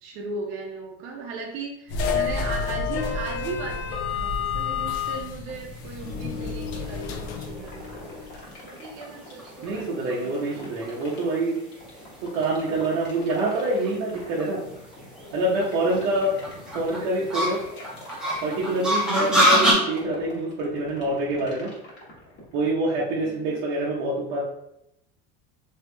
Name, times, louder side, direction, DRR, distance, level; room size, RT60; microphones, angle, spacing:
voice 1, 0.0-8.1 8.7-10.7 23.2-23.6, right 3 dB, 45° right, 0 dB, 0.5 m, -37 dB
sound 1, 1.9-8.4, left 5 dB, 55° left, 0.5 m, -30 dB
sound 2, 5.8-19.7, equal, ahead, 0.8 m, -28 dB
sound 3, 6.8-22.7, left 2 dB, 35° left, 1.1 m, -45 dB
voice 2, 9.6-11.6 12.2-14.6 15.3-16.4 16.7-17.6 18.4-21.7 22.5-24.4, right 2 dB, 75° right, -6 dB, 0.8 m, -26 dB
3.1 x 3.0 x 2.2 m, 0.80 s
cardioid pair, 140°, 30 cm